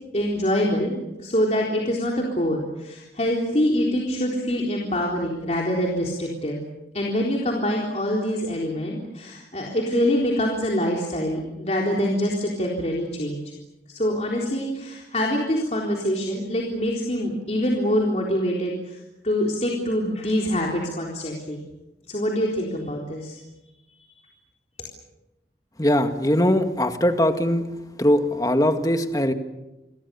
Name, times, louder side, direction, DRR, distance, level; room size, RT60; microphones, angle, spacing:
voice 1, 0.1-6.6 6.9-13.4 13.9-21.6 22.1-23.4, equal, 40° left, -1 dB, 3.9 m, -25 dB
voice 2, 25.8-27.7 28.0-29.3, left 1 dB, 20° left, 7 dB, 2.0 m, -21 dB
29.0 x 23.5 x 7.0 m, 0.99 s
head